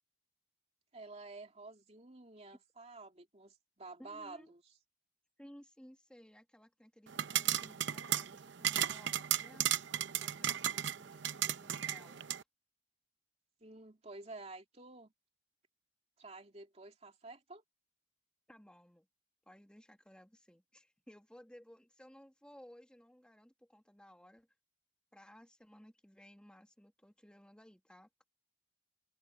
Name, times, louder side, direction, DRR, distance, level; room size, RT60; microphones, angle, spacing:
voice 1, 0.9-4.6 13.6-15.1 16.2-17.6, right 3 dB, 35° right, 2.5 m, -51 dB
voice 2, 4.0-4.5 5.4-9.7 10.2-12.3 18.5-19.1 19.5-24.5 25.1-28.2, equal, 5° left, 1.8 m, -58 dB
sound 1, 7.1-12.4, right 11 dB, 65° right, 0.7 m, -35 dB
open air
head